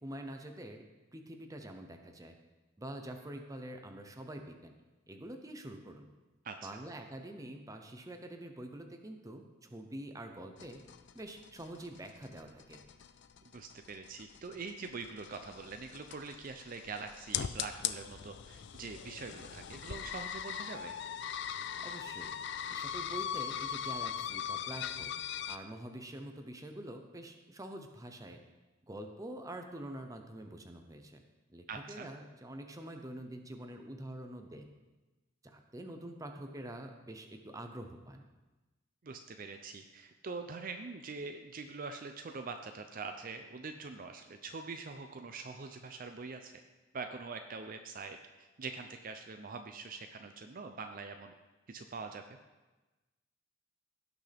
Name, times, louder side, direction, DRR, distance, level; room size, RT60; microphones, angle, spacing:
voice 1, 0.0-0.8 1.1-2.4 2.8-4.7 5.1-6.1 6.6-10.8 11.1-12.8 21.8-22.3 22.7-25.1 25.5-28.4 28.9-31.2 31.5-34.7 35.4-38.2, right 1 dB, 15° right, 5 dB, 0.8 m, -46 dB
voice 2, 6.4-6.8 13.5-21.0 31.7-32.1 39.0-46.5 46.9-51.3 51.7-52.2, right 4 dB, 45° right, 6 dB, 0.5 m, -44 dB
sound 1, 10.6-25.6, left 9 dB, 60° left, 0.4 m, -40 dB
17.0 x 6.1 x 3.5 m, 1.2 s
head